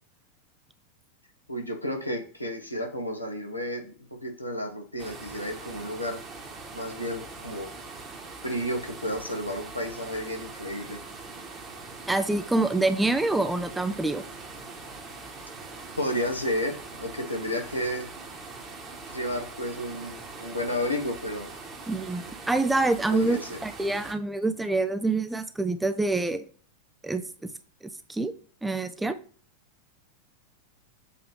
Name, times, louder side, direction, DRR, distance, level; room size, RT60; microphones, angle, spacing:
voice 1, 1.5-3.9 4.2-6.2 6.7-7.7 8.4-11.0 16.0-18.1 19.1-21.5 23.1-23.6, left 1 dB, 85° left, 2 dB, 1.1 m, -32 dB
sound 1, 5.0-24.1, right 3 dB, 20° right, 1.3 m, -42 dB
voice 2, 12.1-14.2 21.9-26.4 27.0-27.5 28.1-28.3 28.6-29.2, right 2 dB, 5° right, 10 dB, 0.5 m, -26 dB
7.3 x 3.0 x 4.5 m, 0.43 s
figure-of-eight pair, 90°, 0 cm